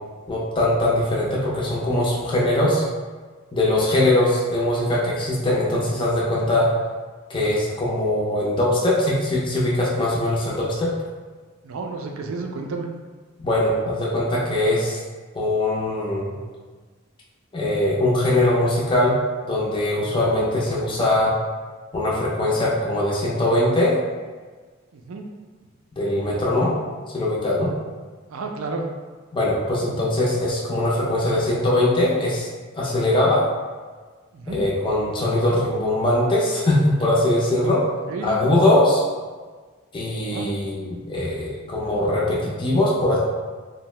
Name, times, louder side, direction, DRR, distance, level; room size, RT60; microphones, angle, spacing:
voice 1, 0.3-2.8 3.5-6.7 7.3-10.9 13.4-15.0 15.3-16.3 17.5-19.1 19.5-21.3 21.9-24.0 26.0-26.7 27.1-27.7 29.3-32.5 32.8-33.4 34.5-37.8 38.2-39.0 39.9-43.2, left 1 dB, 25° left, -6 dB, 0.5 m, -21 dB
voice 2, 11.6-12.9 24.9-25.2 28.3-28.8 34.3-34.6 38.0-38.3 40.2-40.5, right 3 dB, 70° right, 3 dB, 0.4 m, -31 dB
2.7 x 2.1 x 3.1 m, 1.4 s
head